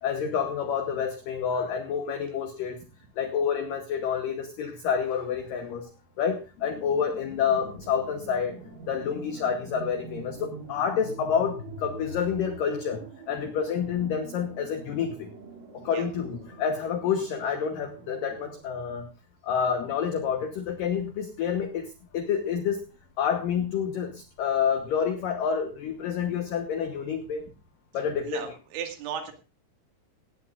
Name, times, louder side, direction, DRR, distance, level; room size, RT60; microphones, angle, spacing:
voice 1, 0.0-2.8 3.2-5.9 6.2-8.6 8.9-15.3 15.7-19.1 19.4-22.8 23.2-27.4 27.9-28.4, left 7 dB, 90° left, 6 dB, 1.9 m, -28 dB
sound 1, 6.6-12.5, left 1 dB, 55° left, 1.3 m, -43 dB
sound 2, 7.6-18.6, right 6 dB, 50° right, 4.0 m, -47 dB
voice 2, 28.2-29.3, right 8 dB, 75° right, 4 dB, 4.2 m, -35 dB
17.5 x 16.0 x 2.5 m, 0.30 s
omnidirectional pair, 5.7 m